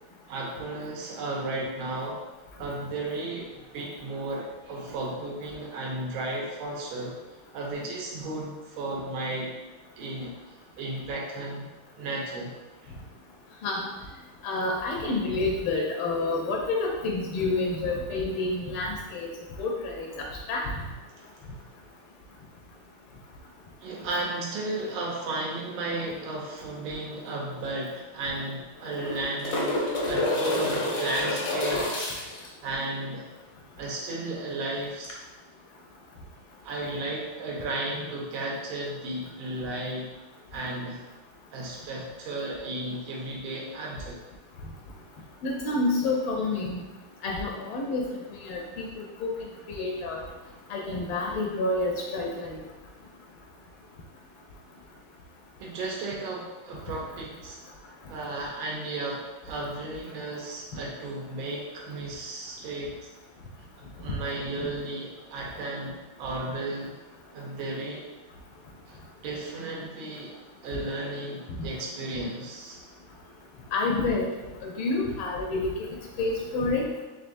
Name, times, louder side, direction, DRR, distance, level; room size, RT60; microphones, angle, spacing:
voice 1, 0.3-2.2 2.6-7.2 7.5-9.5 10.0-11.7 12.0-12.5 12.8-12.9 21.2-21.3 23.8-32.1 32.6-33.3 33.8-35.2 36.6-40.1 40.5-41.0 41.5-44.2 55.6-57.6 58.1-62.9 64.0-67.0 67.3-68.0 68.9-70.3 70.6-72.8, right 2 dB, 80° right, -2 dB, 1.6 m, -34 dB
voice 2, 14.4-19.3 19.6-20.6 45.4-46.8 47.2-49.4 49.7-50.2 50.7-52.6 73.7-74.3 74.6-75.7 76.2-76.8, left 2 dB, 80° left, -1 dB, 1.4 m, -28 dB
sound 1, 27.3-27.4 27.6-27.7 28.8-32.5 35.0-35.1, left 1 dB, 60° left, 0.8 m, -28 dB
4.4 x 3.6 x 2.6 m, 1.1 s
omnidirectional pair, 2.2 m